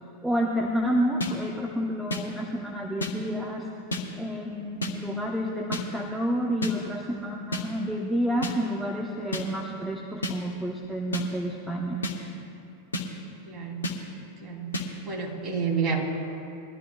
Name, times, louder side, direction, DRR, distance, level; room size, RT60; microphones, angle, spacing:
voice 1, 0.2-3.7 4.2-12.0, equal, 5° right, 0 dB, 1.0 m, -29 dB
sound 1, 1.2-1.3 2.1-2.2 3.0-3.1 3.9-4.0 4.8-4.9 5.7-5.8 6.6-6.7 7.5-7.6 8.4-8.5 9.3-9.4 10.2-10.3 11.1-11.2 12.0-12.2 12.9-13.1 13.8-14.0 14.7-14.9, left 1 dB, 75° left, 1.4 m, -29 dB
voice 2, 13.4-13.9 14.4-14.8 15.0-16.0, right 6 dB, 25° right, -3 dB, 3.2 m, -29 dB
21.5 x 13.0 x 2.4 m, 2.8 s
figure-of-eight pair, 90°, 0 cm